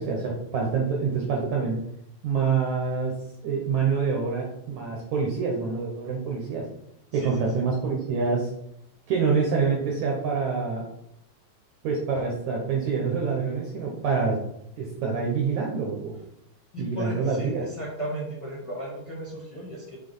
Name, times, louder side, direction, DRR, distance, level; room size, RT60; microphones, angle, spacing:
voice 1, 0.0-1.8 2.2-3.2 3.4-6.7 7.1-8.5 9.1-10.9 11.8-14.4 14.8-16.2 16.8-17.6, right 5 dB, 65° right, -1 dB, 1.9 m, -26 dB
voice 2, 7.1-7.6 16.7-20.0, right 1 dB, 45° left, -4 dB, 1.5 m, -36 dB
7.6 x 4.0 x 5.5 m, 0.78 s
omnidirectional pair, 4.5 m